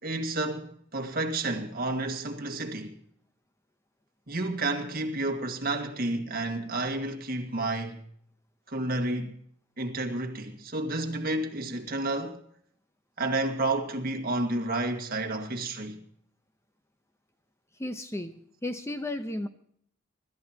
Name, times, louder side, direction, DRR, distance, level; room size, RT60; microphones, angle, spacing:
voice 1, 0.0-3.0 4.3-8.0 8.7-9.4 9.8-12.4 13.2-16.0, right 2 dB, 45° right, 1.9 m, -30 dB
voice 2, 17.8-19.5, left 1 dB, 15° left, 0.8 m, -34 dB
25.0 x 13.5 x 2.9 m
head